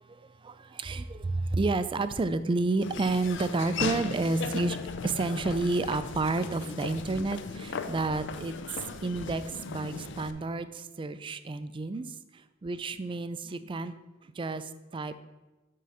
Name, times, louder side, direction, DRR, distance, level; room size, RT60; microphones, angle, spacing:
voice 1, 0.0-4.8 5.0-13.9 14.2-15.1, right 3 dB, 25° right, 12 dB, 0.3 m, -31 dB
Laughter / Walk footsteps, 2.8-10.3, left 5 dB, 60° left, 0.5 m, -37 dB
9.1 x 3.8 x 5.5 m, 1.1 s
head